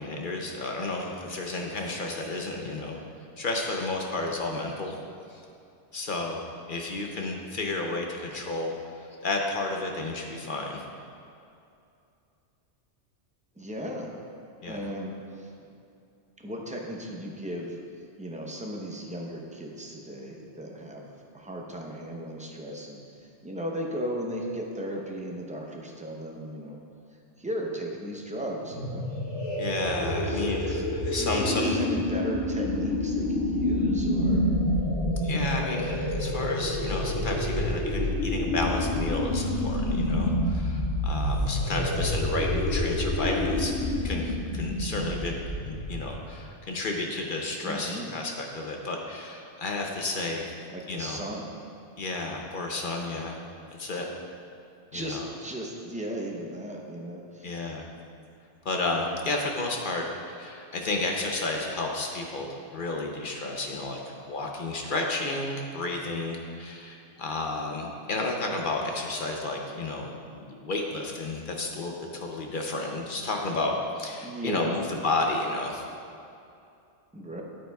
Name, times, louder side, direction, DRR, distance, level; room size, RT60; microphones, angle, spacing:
voice 1, 0.0-3.0 3.4-5.0 5.3-5.4 5.9-6.4 6.7-8.7 9.2-10.8 14.6-14.8 29.6-31.8 35.2-43.7 44.0-45.4 45.7-50.5 50.9-51.2 52.0-53.4 53.8-54.1 54.9-55.3 57.4-57.9 58.6-64.0 64.3-75.8, left 2 dB, 55° left, 1 dB, 0.8 m, -32 dB
voice 2, 13.6-14.2 14.7-15.5 16.4-17.8 18.2-21.1 21.3-26.8 27.4-29.1 30.0-30.9 31.1-34.5 42.0-42.4 47.6-48.1 50.7-51.5 53.9-54.0 54.9-57.7 74.2-74.8 77.1-77.4, equal, 10° right, 0 dB, 0.6 m, -36 dB
sound 1, 28.6-46.2, left 1 dB, 90° left, 1.7 m, -28 dB
9.3 x 8.7 x 2.3 m, 2.6 s
omnidirectional pair, 1.2 m